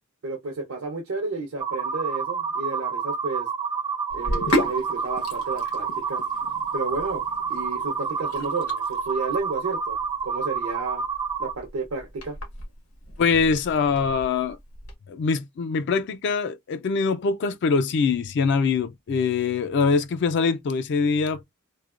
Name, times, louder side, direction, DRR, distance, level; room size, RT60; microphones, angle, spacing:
voice 1, 0.2-3.5 4.1-6.3 6.7-7.2 7.5-11.0 11.4-12.4, right 3 dB, 70° right, 0.6 m, -32 dB
sound 1, 1.6-11.5, right 6 dB, 20° right, 0.3 m, -29 dB
Sink (filling or washing), 4.1-14.9, left 1 dB, 80° left, 1.2 m, -34 dB
voice 2, 13.2-14.6 15.1-21.5, left 5 dB, 55° left, 0.4 m, -23 dB
3.1 x 2.2 x 2.3 m
head